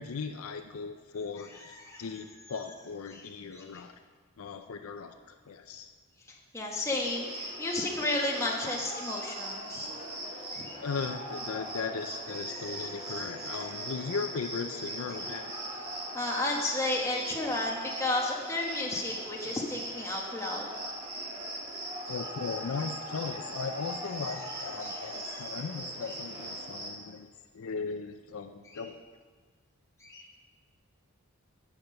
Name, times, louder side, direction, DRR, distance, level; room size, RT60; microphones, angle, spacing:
voice 1, 0.0-4.0 4.4-5.1 5.5-5.9 10.8-15.6 22.1-27.3 27.5-29.0, left 5 dB, 70° left, 6 dB, 0.5 m, -37 dB
voice 2, 1.4-2.0 3.1-3.8 6.3-9.9 10.5-10.8 12.4-13.6 15.7-15.8 16.1-20.7 24.3-24.5 24.8-25.5 28.7-28.8 30.0-30.3, left 2 dB, 15° left, -2 dB, 1.2 m, -34 dB
Cricket, 7.0-26.9, right 1 dB, 25° right, 1.6 m, -39 dB
8.8 x 5.9 x 6.4 m, 1.5 s
head